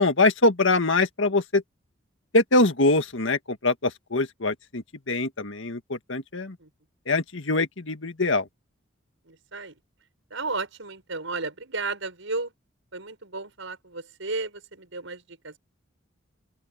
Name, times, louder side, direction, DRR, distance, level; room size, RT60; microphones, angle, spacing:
voice 1, 0.0-1.6 2.3-6.6 7.1-8.4, left 2 dB, 80° left, 1.9 m, -23 dB
voice 2, 9.2-9.7 10.3-12.5 12.9-15.6, right 3 dB, 85° right, 5.7 m, -33 dB
open air
head